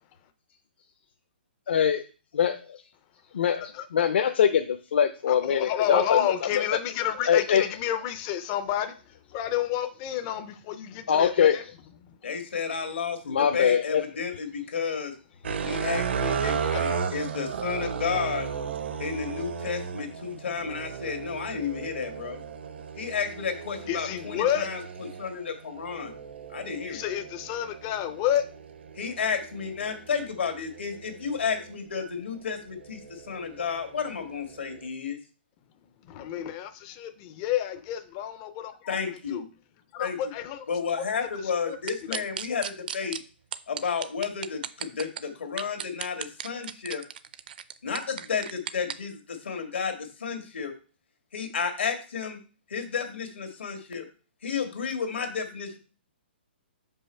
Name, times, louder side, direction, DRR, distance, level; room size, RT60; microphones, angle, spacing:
voice 1, 1.7-2.0 2.4-2.5 3.3-6.2 6.5-6.8 7.3-7.7 11.1-11.6 13.3-14.0, left 8 dB, 70° left, 0.6 m, -23 dB
voice 2, 5.3-9.0 9.3-11.6 16.7-17.0 23.9-24.7 26.9-28.5 36.1-39.0 39.3-39.4 39.9-40.7 41.0-41.1 41.6-41.8 42.1-42.2, left 10 dB, 25° left, 0.4 m, -30 dB
voice 3, 12.2-15.1 15.7-18.5 19.0-22.4 23.0-26.1 26.5-27.0 28.9-35.2 38.9-39.5 40.0-40.2 40.7-43.2 43.7-47.0 47.8-50.7 51.3-52.4 52.7-54.1 54.4-55.8, left 6 dB, 90° left, 1.7 m, -32 dB
sound 1, 15.4-31.8 32.4-34.9, right 6 dB, 75° right, 0.8 m, -35 dB
sound 2, 41.9-43.2 43.5-45.2 45.6-48.9, right 9 dB, 50° right, 0.5 m, -34 dB
5.4 x 5.3 x 4.3 m
hypercardioid pair, 160°, 6 cm